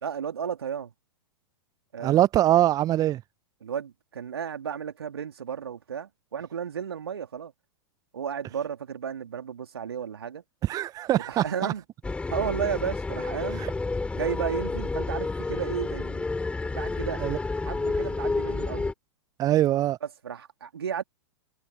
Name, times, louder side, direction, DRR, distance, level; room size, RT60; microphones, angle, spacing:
voice 1, 0.0-0.9 1.9-2.2 3.6-7.5 8.1-10.4 11.2-11.8 12.3-13.6 14.1-16.3 16.7-17.2 17.6-18.9 20.0-21.0, right 7 dB, 70° right, 3.3 m, -33 dB
voice 2, 2.0-3.2 10.6-11.7 13.6-13.7 17.2-17.4 19.4-20.0, right 13 dB, 25° right, 0.9 m, -23 dB
sound 1, 12.0-18.9, left 3 dB, 10° left, 4.1 m, -30 dB
figure-of-eight pair, 100°, 14 cm